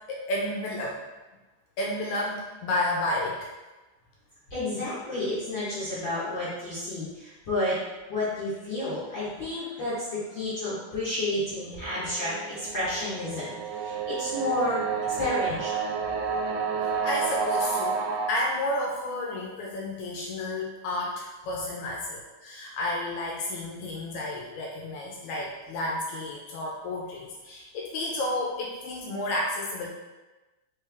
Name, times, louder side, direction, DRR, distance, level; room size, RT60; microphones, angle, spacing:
voice 1, 0.1-1.0 1.8-3.5 17.0-18.0 18.3-29.9, left 1 dB, 80° left, -2 dB, 1.9 m, -31 dB
voice 2, 4.5-7.8 8.1-14.8 15.2-15.8, left 1 dB, 55° left, -12 dB, 1.3 m, -31 dB
sound 1, 11.6-18.3, right 6 dB, 90° right, 2.2 m, -30 dB
4.7 x 3.3 x 3.4 m, 1.1 s
omnidirectional pair, 3.8 m